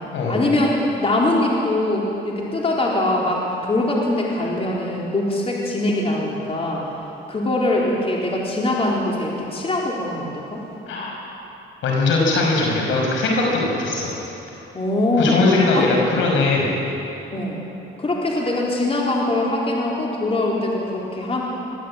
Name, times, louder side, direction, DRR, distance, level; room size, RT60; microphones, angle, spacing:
voice 1, 0.3-6.9 7.3-10.6 14.7-15.4 15.7-15.9 17.3-17.6 18.0-21.4, left 2 dB, 30° left, -3 dB, 4.0 m, -22 dB
voice 2, 10.9-11.2 11.8-14.1 15.2-16.7, left 3 dB, 80° left, -1 dB, 5.8 m, -20 dB
21.5 x 14.5 x 8.7 m, 2.9 s
cardioid pair, 90°, 20 cm